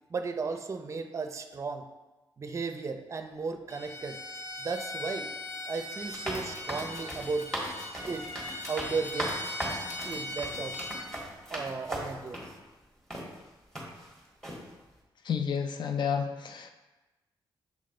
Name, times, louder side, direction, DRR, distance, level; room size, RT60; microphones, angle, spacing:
voice 1, 0.1-1.9 2.4-4.2 4.6-5.3 5.6-7.5 8.1-8.3 8.7-9.4 10.0-10.8 11.5-12.5, right 4 dB, 35° right, 7 dB, 0.5 m, -35 dB
Bowed string instrument, 3.7-11.1, left 1 dB, 30° left, 0.9 m, -40 dB
sound 1, 6.0-12.5 13.1-13.3 13.8-14.1 14.4-14.6, equal, 5° left, 1.5 m, -38 dB
voice 2, 15.2-16.7, left 7 dB, 55° left, 6 dB, 0.5 m, -30 dB
7.2 x 3.8 x 3.7 m, 1.1 s
cardioid pair, 115°, 9 cm